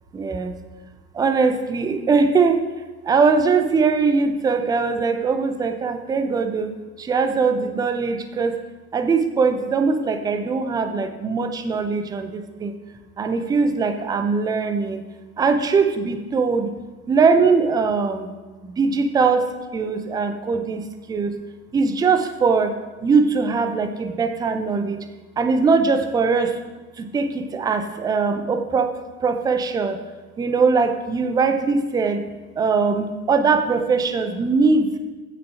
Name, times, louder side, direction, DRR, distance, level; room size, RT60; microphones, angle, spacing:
voice 1, 0.1-0.5 1.1-2.6 3.1-8.6 8.9-12.7 13.2-15.0 15.4-16.7 17.1-18.3 18.6-19.5 19.7-20.8 21.1-21.3 21.7-22.7 23.0-25.0 25.4-26.5 27.0-28.9 29.2-30.0 30.4-32.2 32.6-34.9, right 4 dB, 10° right, 8 dB, 0.7 m, -21 dB
15.0 x 6.6 x 4.9 m, 1.3 s
figure-of-eight pair, 90°, 46 cm